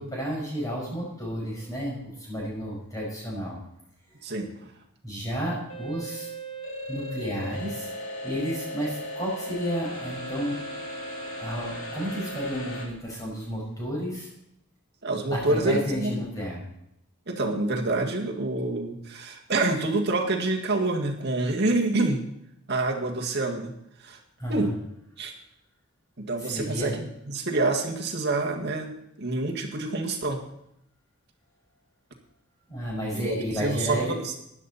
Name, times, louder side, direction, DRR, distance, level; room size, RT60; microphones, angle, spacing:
voice 1, 0.0-3.6 4.1-4.2 5.0-6.3 6.9-7.9 8.2-10.6 11.4-14.3 15.3-16.6 24.4-24.7 26.4-26.9 32.7-34.1, equal, 15° left, -4 dB, 5.5 m, -31 dB
voice 2, 4.2-4.5 15.0-16.2 17.3-22.2 22.7-23.7 24.0-24.2 24.5-24.7 25.2-25.3 26.2-30.4 33.2-34.4, right 2 dB, 50° right, 1 dB, 1.8 m, -27 dB
sound 1, 5.7-12.9, equal, 65° left, 3.0 m, -36 dB
15.5 x 10.5 x 4.2 m, 0.78 s
head